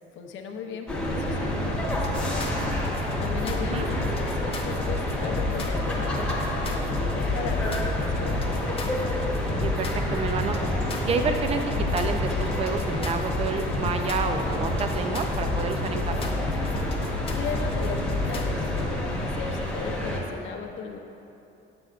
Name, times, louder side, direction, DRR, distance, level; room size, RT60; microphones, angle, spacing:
voice 1, 0.1-2.6 3.2-8.7 17.3-21.0, left 5 dB, 70° left, 3 dB, 0.7 m, -36 dB
sound 1, 0.9-20.2, left 1 dB, 5° left, 1.2 m, -29 dB
sound 2, 1.9-18.9, left 3 dB, 30° left, 0.7 m, -32 dB
voice 2, 3.6-3.9 9.5-10.7 11.0-16.3, right 5 dB, 30° right, 7 dB, 0.5 m, -29 dB
9.0 x 7.7 x 2.5 m, 2.9 s
cardioid pair, 130°, 21 cm